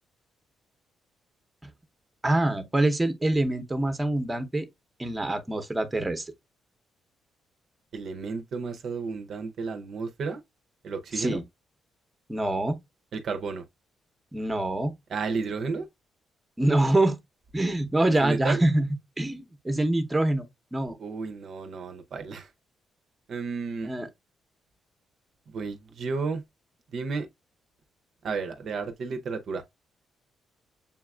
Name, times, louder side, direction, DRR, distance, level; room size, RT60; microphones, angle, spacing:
voice 1, 2.2-4.7 5.0-6.3 11.1-11.4 12.3-12.8 14.3-14.9 16.6-17.2 17.5-18.9 19.2-20.4 20.7-21.0 23.8-24.1, right 1 dB, 15° right, 0.7 m, -25 dB
voice 2, 7.9-10.4 10.8-11.4 13.1-13.6 15.1-15.9 18.2-18.6 21.0-22.5 23.3-23.9 25.5-26.4 26.9-27.3 28.2-29.6, right 4 dB, 60° right, 0.5 m, -32 dB
6.9 x 2.3 x 2.2 m
cardioid pair, 90°, 0 cm